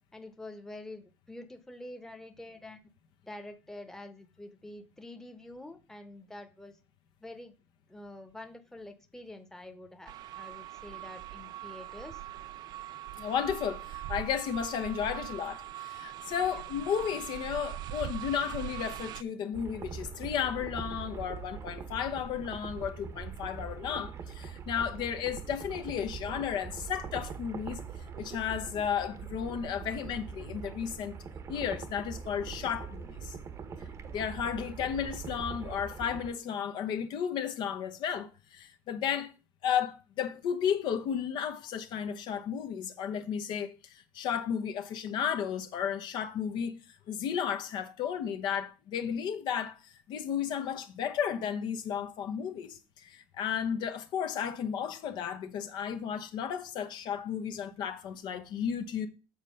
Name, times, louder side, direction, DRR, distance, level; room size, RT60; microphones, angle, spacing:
voice 1, 0.1-2.8 3.2-6.8 7.2-7.5 7.9-12.2 16.5-16.6, left 1 dB, 5° left, 1.0 m, -47 dB
sound 1, 10.1-19.2, right 13 dB, 55° right, 0.4 m, -41 dB
voice 2, 13.2-27.8 28.2-31.1 31.5-33.4 34.1-39.3 39.6-46.8 47.1-49.8 50.1-59.1, left 8 dB, 60° left, 1.0 m, -33 dB
sound 2, 19.5-36.3, right 6 dB, 35° right, 0.9 m, -42 dB
7.4 x 4.2 x 6.4 m
cardioid pair, 120°, 9 cm